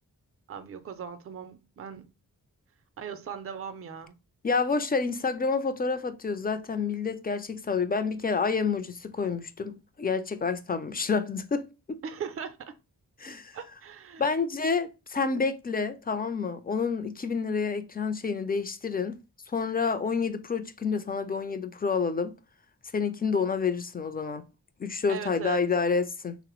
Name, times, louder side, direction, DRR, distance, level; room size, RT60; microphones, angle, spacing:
voice 1, 0.5-2.0 3.0-4.2 12.0-12.7 13.5-14.2 25.1-25.6, right 7 dB, 35° right, 0.5 m, -38 dB
voice 2, 4.4-12.0 13.2-13.6 14.2-19.2 19.5-22.4 22.9-24.4 24.8-26.4, left 5 dB, 25° left, 0.4 m, -29 dB
3.2 x 2.0 x 3.0 m
cardioid pair, 45°, 40 cm